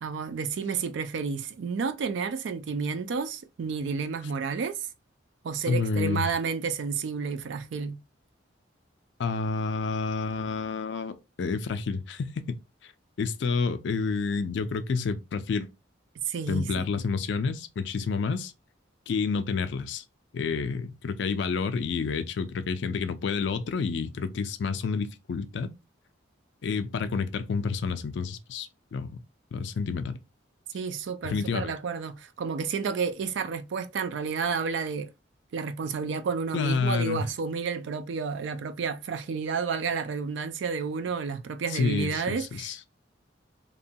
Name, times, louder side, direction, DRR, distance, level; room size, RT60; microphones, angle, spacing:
voice 1, 0.0-4.9 5.4-8.0 16.3-16.9 30.7-35.1 35.5-42.8, right 5 dB, 70° right, 0.4 m, -31 dB
voice 2, 5.7-6.3 9.2-12.3 12.8-12.9 13.2-15.7 16.5-18.5 19.1-20.0 20.3-25.7 26.6-29.1 29.5-30.2 31.2-31.7 36.5-37.2 41.7-42.8, left 4 dB, 65° left, 0.4 m, -29 dB
2.9 x 2.2 x 2.7 m
head